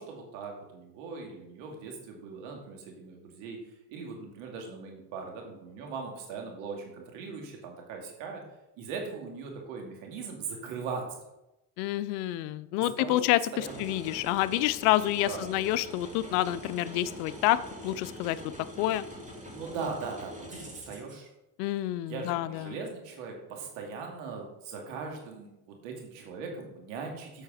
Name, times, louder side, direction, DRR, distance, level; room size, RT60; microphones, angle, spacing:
voice 1, 0.0-3.6 3.9-8.4 8.8-11.2 12.8-13.2 13.5-13.9 15.2-15.4 19.5-21.3 22.1-27.4, right 5 dB, 75° right, 1 dB, 2.4 m, -40 dB
voice 2, 11.8-18.4 18.8-19.0 21.6-22.8, left 15 dB, 80° left, 16 dB, 0.6 m, -28 dB
sound 1, 13.6-21.2, equal, 15° right, 2.5 m, -44 dB
8.2 x 6.4 x 4.9 m, 0.91 s
supercardioid pair, 75°, 47 cm